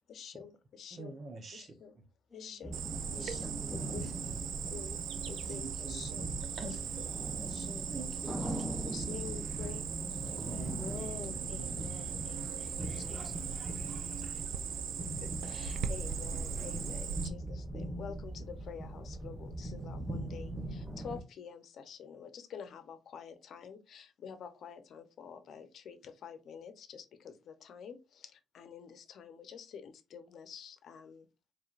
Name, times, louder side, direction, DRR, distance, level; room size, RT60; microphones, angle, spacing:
voice 1, 0.1-1.1 1.5-1.9 2.3-2.8 3.1-4.0 4.7-5.0 5.3-6.3 6.6-7.1 7.4-7.8 8.5-9.8 10.5-12.8 15.2-31.3, left 7 dB, 65° left, 0.8 m, -48 dB
voice 2, 0.9-1.7 3.1-4.4 5.4-6.8 7.9-8.7 10.2-10.9 11.5-11.9, right 3 dB, 40° right, 0.9 m, -46 dB
voice 3, 2.3-3.7 12.6-14.4, left 1 dB, 10° left, 1.5 m, -58 dB
sound 1, 2.6-21.2, right 1 dB, 10° right, 0.8 m, -41 dB
Cricket, 2.7-17.3, right 7 dB, 80° right, 0.5 m, -39 dB
4.4 x 3.3 x 2.5 m
cardioid pair, 90°, 0 cm